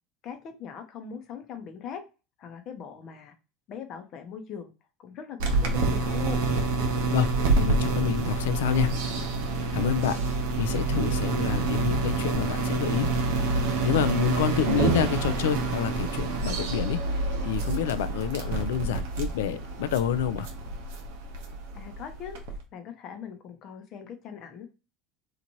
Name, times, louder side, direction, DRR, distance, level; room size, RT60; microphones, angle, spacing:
voice 1, 0.2-2.0 2.4-3.3 3.7-4.7 5.0-6.5 21.7-24.7, left 7 dB, 50° left, 0.7 m, -41 dB
sound 1, 5.4-22.6, right 3 dB, 75° right, 0.7 m, -27 dB
voice 2, 7.6-8.9 9.7-10.2 10.6-13.1 13.8-17.0 17.4-20.5, left 9 dB, 80° left, 0.3 m, -28 dB
3.0 x 2.5 x 2.7 m
hypercardioid pair, 85°, 0 cm